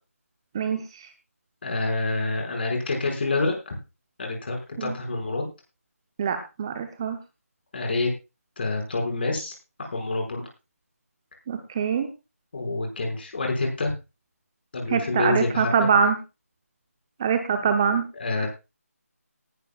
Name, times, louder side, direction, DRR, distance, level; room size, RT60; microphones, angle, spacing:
voice 1, 0.5-1.1 4.8-4.9 6.2-7.2 11.5-12.1 14.9-16.2 17.2-18.0 18.4-18.5, right 6 dB, 20° right, 7 dB, 0.8 m, -24 dB
voice 2, 1.6-3.7 4.2-5.5 7.7-8.1 8.6-10.5 12.5-13.9 14.7-15.9 18.2-18.5, left 3 dB, 40° left, 1 dB, 5.7 m, -27 dB
19.0 x 11.5 x 2.4 m, 0.28 s
figure-of-eight pair, 165°, 8 cm